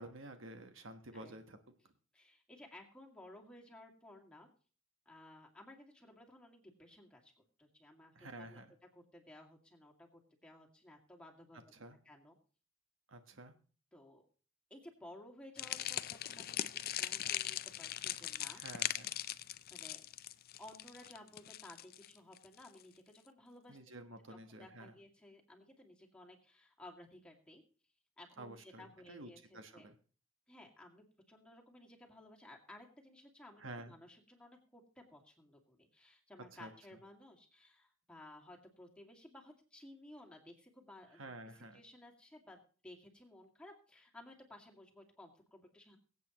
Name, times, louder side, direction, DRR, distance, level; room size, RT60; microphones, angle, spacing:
voice 1, 0.0-1.6 8.1-8.7 11.7-12.0 13.1-13.5 18.5-19.1 23.7-24.9 28.4-30.0 33.6-34.0 36.5-36.7 41.1-41.8, right 1 dB, 70° right, 7 dB, 1.3 m, -50 dB
voice 2, 2.1-4.5 5.1-7.3 7.6-8.6 8.9-11.6 12.0-12.4 13.9-14.2 14.7-18.6 19.7-20.1 20.6-23.8 24.3-27.6 28.2-29.9 30.5-46.0, left 1 dB, 5° left, 0 dB, 2.2 m, -57 dB
sound 1, 15.6-22.8, left 12 dB, 50° left, 0.5 m, -40 dB
23.0 x 8.3 x 3.0 m, 0.39 s
head